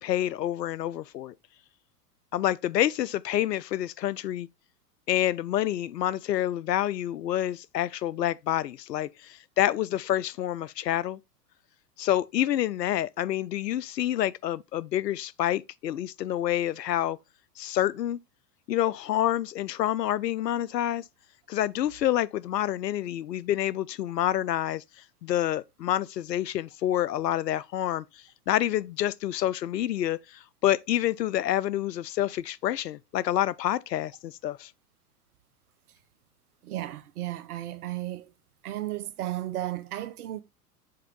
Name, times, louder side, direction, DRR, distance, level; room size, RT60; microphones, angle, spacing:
voice 1, 0.0-1.3 2.3-4.5 5.1-11.2 12.0-17.2 17.6-18.2 18.7-21.0 21.5-24.8 25.2-34.7, left 12 dB, 90° left, 0.5 m, -28 dB
voice 2, 36.6-38.3 38.6-40.4, right 14 dB, 65° right, 0.9 m, -34 dB
6.6 x 4.4 x 3.7 m
hypercardioid pair, 100°, 48 cm